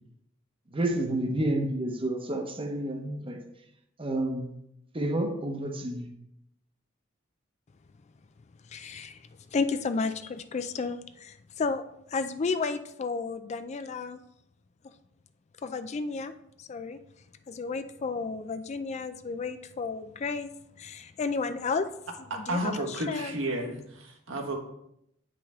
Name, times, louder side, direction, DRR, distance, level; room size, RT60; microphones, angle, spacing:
voice 1, 0.7-3.4 4.0-4.5 4.9-6.1, right 1 dB, 25° right, 4 dB, 0.9 m, -30 dB
voice 2, 8.7-11.8 12.1-14.2 15.6-16.3 16.6-17.0 17.5-20.5 20.8-21.9 22.4-23.3, left 4 dB, 35° left, 10 dB, 0.3 m, -32 dB
voice 3, 22.5-24.6, right 1 dB, 70° right, 2 dB, 1.3 m, -32 dB
8.6 x 5.1 x 3.5 m, 0.78 s
head